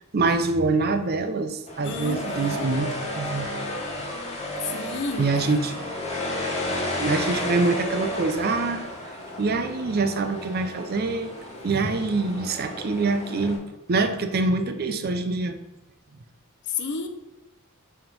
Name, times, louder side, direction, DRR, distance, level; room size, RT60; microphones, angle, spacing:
voice 1, 0.1-2.9 3.2-3.5 5.2-5.8 7.0-8.8 9.4-11.3 11.6-13.6 13.9-15.6, right 3 dB, 45° right, 9 dB, 0.5 m, -25 dB
sound 1, 1.7-13.6, left 1 dB, 30° left, 1.3 m, -32 dB
voice 2, 1.8-2.7 4.6-5.6 16.7-17.1, left 4 dB, 55° left, 6 dB, 0.7 m, -32 dB
5.7 x 3.6 x 5.3 m, 1.0 s
head